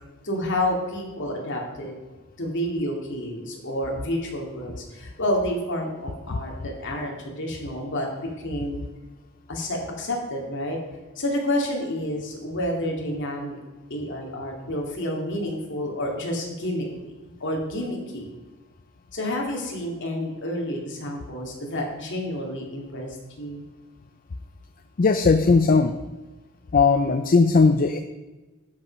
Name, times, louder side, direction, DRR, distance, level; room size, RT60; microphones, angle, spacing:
voice 1, 0.2-1.9 2.4-8.1 8.4-8.8 9.5-10.8 11.2-13.6 13.9-17.1 17.4-18.3 19.1-23.6, left 1 dB, 60° left, 0 dB, 2.4 m, -29 dB
voice 2, 25.0-25.9 26.7-28.0, left 4 dB, 40° left, 8 dB, 0.5 m, -18 dB
12.0 x 5.5 x 5.2 m, 1.2 s
head